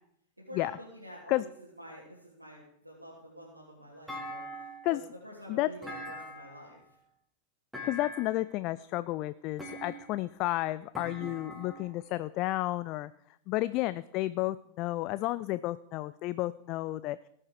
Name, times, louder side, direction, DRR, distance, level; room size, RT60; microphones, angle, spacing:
voice 1, 0.4-1.5 1.8-6.8, equal, 85° right, -6 dB, 3.2 m, -48 dB
Thump thud, 4.1-5.0 5.8-6.7 7.7-8.5 9.6-10.3 10.9-12.0, equal, ahead, 3.7 m, -42 dB
voice 2, 7.8-13.1 13.5-17.2, left 17 dB, 40° left, 15 dB, 0.4 m, -31 dB
19.0 x 7.2 x 4.9 m, 0.73 s
figure-of-eight pair, 90°, 0 cm